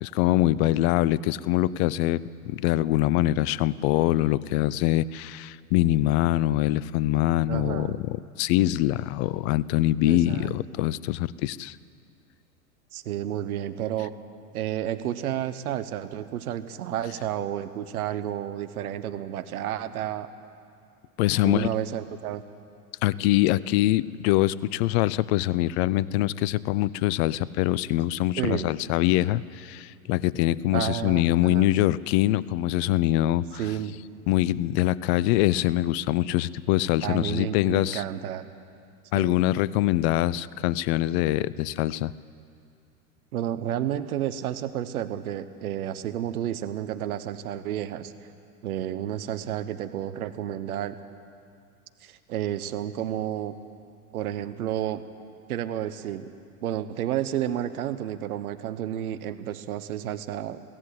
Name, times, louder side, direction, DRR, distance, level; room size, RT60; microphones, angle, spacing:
voice 1, 0.0-11.8 21.2-21.7 23.0-33.6 34.3-38.0 39.1-42.1, left 15 dB, 45° left, 20 dB, 0.6 m, -24 dB
voice 2, 7.5-8.0 10.1-10.6 12.9-14.1 14.5-20.3 21.4-22.4 28.4-28.7 30.7-31.7 33.6-33.9 37.0-38.5 39.1-39.5 43.3-48.1 48.6-51.0 52.0-53.6 54.1-55.0 55.5-56.3 56.6-60.6, right 11 dB, 65° right, 11 dB, 1.2 m, -31 dB
23.5 x 16.0 x 8.2 m, 2.4 s
hypercardioid pair, 95°, 46 cm